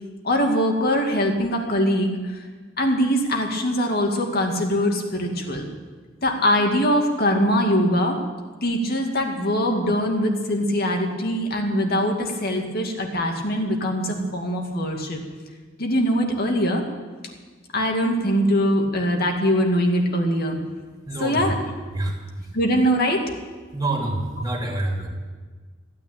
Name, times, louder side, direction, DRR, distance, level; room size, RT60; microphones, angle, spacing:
voice 1, 0.2-2.4 2.8-5.7 6.2-8.2 8.6-15.2 15.8-16.8 17.7-20.6 21.2-21.5 22.5-23.2, equal, 50° left, 2 dB, 2.3 m, -22 dB
voice 2, 21.1-21.5 21.9-22.1 23.7-25.1, right 2 dB, 20° right, 0 dB, 3.1 m, -26 dB
16.0 x 9.6 x 8.8 m, 1.5 s
head